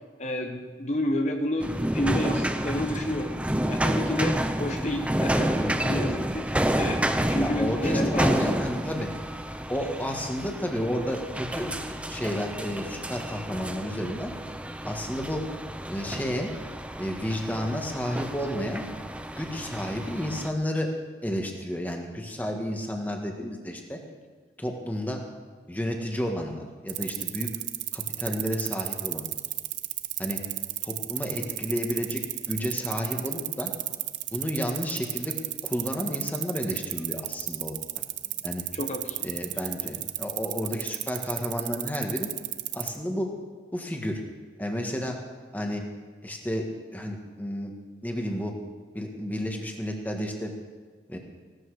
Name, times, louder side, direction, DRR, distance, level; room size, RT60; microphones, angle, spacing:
voice 1, 0.2-3.4 3.7-8.6 38.8-39.3, left 1 dB, 40° left, 4 dB, 1.2 m, -30 dB
sound 1, 1.6-20.5, right 1 dB, 5° right, 0.6 m, -30 dB
voice 2, 7.4-9.1 9.7-14.3 14.8-15.4 15.9-16.5 17.0-18.8 19.4-20.9 21.2-24.0 24.6-25.2 25.7-27.5 27.9-29.3 30.2-30.4 30.8-32.2 32.5-33.7 34.3-35.3 35.6-37.8 38.4-38.7 39.2-42.3 42.7-43.3 43.7-44.2 44.6-45.2 45.5-45.8 46.2-47.7 48.0-48.5 48.9-50.5 51.1-51.2, equal, 10° left, 2 dB, 1.6 m, -31 dB
sound 2, 26.9-43.0, right 17 dB, 85° right, 0.6 m, -32 dB
17.0 x 13.0 x 4.9 m, 1.5 s
head